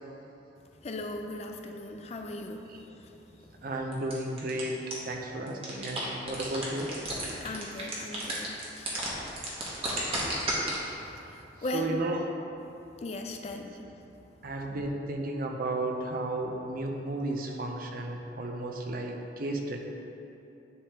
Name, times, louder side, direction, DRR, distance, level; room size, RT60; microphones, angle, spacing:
voice 1, 0.8-2.7 3.0-3.1 7.4-8.9 11.3-12.0 13.0-13.8, left 1 dB, 35° left, 4 dB, 0.4 m, -38 dB
voice 2, 3.6-4.8 5.1-7.0 11.7-12.3 13.4-13.5 13.8-13.9 14.4-19.8, right 2 dB, 50° right, 2 dB, 0.6 m, -33 dB
sound 1, 3.9-4.6 4.9-5.0 5.3-10.7, right 2 dB, 30° right, 1.1 m, -32 dB
10.5 x 3.5 x 2.8 m, 2.8 s
head